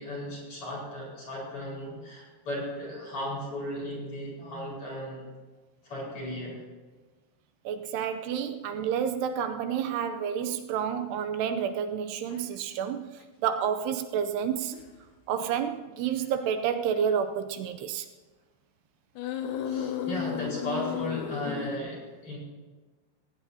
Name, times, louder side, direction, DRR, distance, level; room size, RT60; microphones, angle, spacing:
voice 1, 0.0-5.3 5.8-6.6 19.6-22.4, left 1 dB, 35° left, -4 dB, 5.5 m, -36 dB
voice 2, 7.7-13.1 13.4-14.8 15.3-18.1, right 8 dB, 80° right, 7 dB, 2.8 m, -29 dB
sound 1, 12.3-12.5 13.2-13.3 14.7-14.9 16.0-16.3 16.9-17.1 19.2-21.8, left 9 dB, 80° left, 3.3 m, -34 dB
19.0 x 18.0 x 2.8 m, 1.3 s
omnidirectional pair, 4.8 m